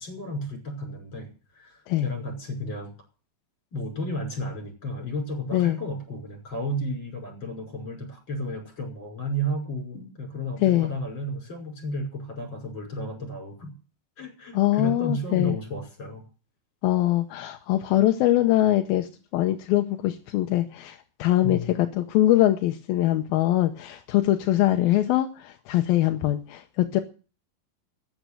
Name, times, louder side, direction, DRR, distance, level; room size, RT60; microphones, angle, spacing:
voice 1, 0.0-2.9 3.7-13.7 14.2-16.2 21.4-21.8, equal, 30° left, 3 dB, 6.2 m, -33 dB
voice 2, 10.6-10.9 14.5-15.6 16.8-27.0, left 14 dB, 80° left, 6 dB, 2.7 m, -23 dB
14.5 x 9.6 x 7.7 m, 0.37 s
omnidirectional pair, 4.2 m